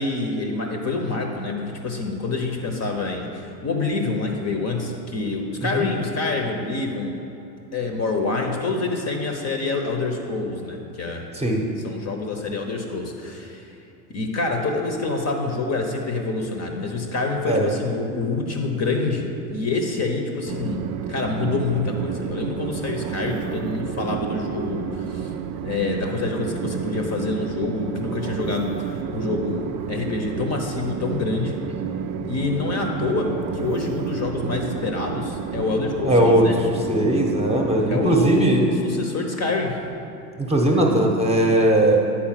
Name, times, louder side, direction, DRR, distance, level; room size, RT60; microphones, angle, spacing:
voice 1, 0.0-7.2 7.7-11.3 11.8-13.7 14.1-20.8 21.1-25.3 25.6-31.6 32.3-36.6 37.9-38.4 38.8-39.8, left 3 dB, 30° left, 3 dB, 0.9 m, -26 dB
voice 2, 11.3-11.6 17.5-17.7 36.0-36.5 36.9-38.7 40.4-42.0, right 1 dB, 10° right, 0 dB, 1.0 m, -19 dB
Train, 20.5-38.3, right 7 dB, 40° right, 0.5 m, -30 dB
8.7 x 4.2 x 5.8 m, 2.8 s
hypercardioid pair, 90°, 49 cm